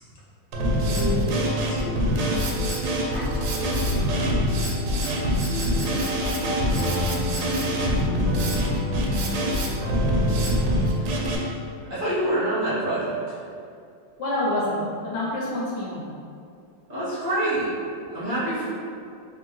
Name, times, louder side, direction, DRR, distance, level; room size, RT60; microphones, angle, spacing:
Drum kit, 0.5-11.4, equal, 75° right, 1.1 m, -24 dB
voice 1, 0.8-2.6 3.1-3.4, left 2 dB, 50° left, -9 dB, 1.0 m, -33 dB
voice 2, 11.9-13.4 16.9-17.7 18.1-18.7, right 1 dB, 40° right, -12 dB, 0.7 m, -26 dB
voice 3, 14.2-16.1, left 1 dB, 70° left, -6 dB, 1.1 m, -28 dB
3.5 x 2.5 x 3.0 m, 2.4 s
omnidirectional pair, 2.3 m